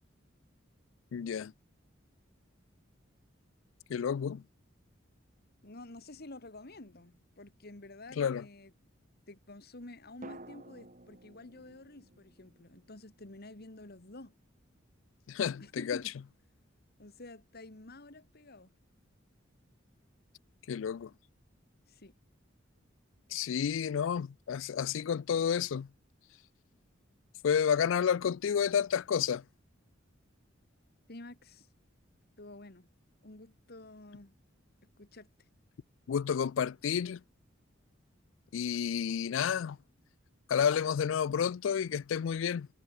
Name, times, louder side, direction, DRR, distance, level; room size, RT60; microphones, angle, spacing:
voice 1, 1.1-1.5 3.9-4.4 8.2-8.4 15.3-16.0 20.7-21.1 23.3-25.9 27.4-29.4 36.1-37.2 38.5-39.8 40.5-42.7, left 7 dB, 75° left, 0.4 m, -30 dB
voice 2, 5.6-8.7 9.3-14.3 15.6-16.1 17.0-18.7 21.9-22.1 31.1-31.7 32.4-32.9 33.2-34.3 35.0-35.3, left 2 dB, 55° left, 2.1 m, -50 dB
sound 1, 6.7-7.8 10.2-14.2 14.4-14.5, right 2 dB, 40° right, 5.2 m, -54 dB
head